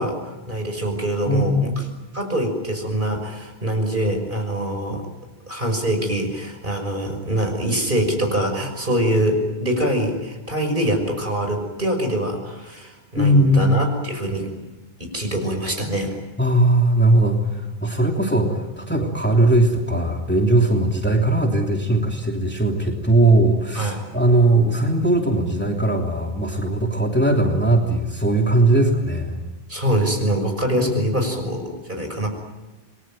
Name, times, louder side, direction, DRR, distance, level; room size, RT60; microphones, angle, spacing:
voice 1, 0.0-1.7 2.1-5.0 5.5-14.5 15.0-16.2 23.7-24.0 29.7-32.3, right 1 dB, 55° right, 4 dB, 6.4 m, -24 dB
voice 2, 1.3-1.8 13.1-13.8 16.4-29.4 30.7-30.9, right 1 dB, 10° left, 1 dB, 3.2 m, -19 dB
28.0 x 22.5 x 9.0 m, 1.2 s
omnidirectional pair, 1.1 m